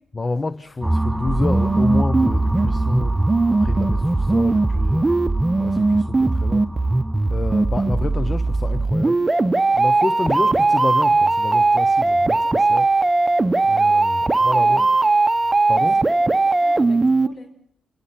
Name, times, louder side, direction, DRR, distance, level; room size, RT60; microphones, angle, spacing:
voice 1, 0.1-5.2 5.6-7.0 7.3-13.2 13.6-14.9 15.7-16.0, left 3 dB, 30° left, 1.0 m, -29 dB
sound 1, 0.8-8.9, right 1 dB, 5° right, 2.9 m, -27 dB
sound 2, 1.3-17.3, right 3 dB, 25° right, 0.9 m, -19 dB
voice 2, 14.2-14.9 16.0-16.2 16.4-17.6, left 3 dB, 60° left, 5.0 m, -43 dB
27.5 x 18.5 x 6.0 m
supercardioid pair, 55°, 0 cm